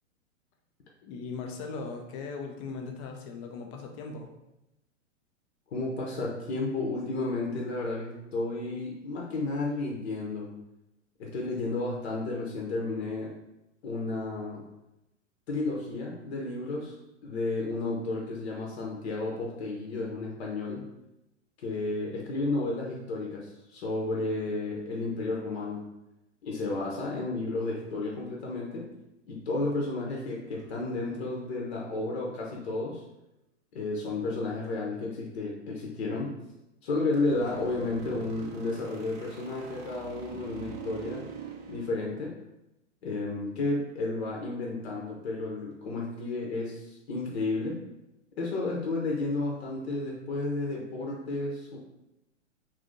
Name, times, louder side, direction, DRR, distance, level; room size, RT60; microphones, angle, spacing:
voice 1, 1.0-4.3, left 4 dB, 25° left, 2 dB, 0.4 m, -38 dB
voice 2, 5.7-10.5 11.2-13.3 13.8-14.6 15.5-17.0 17.2-20.9 21.6-25.9 26.4-28.9 29.3-33.0 33.7-36.3 36.8-41.2 41.7-42.3 43.0-47.8 48.4-51.8, left 2 dB, 55° left, -2 dB, 0.8 m, -32 dB
sound 1, 30.5-32.1 37.1-41.9, right 6 dB, 35° right, 0.5 m, -44 dB
2.7 x 2.6 x 3.6 m, 0.90 s
figure-of-eight pair, 110°, 38 cm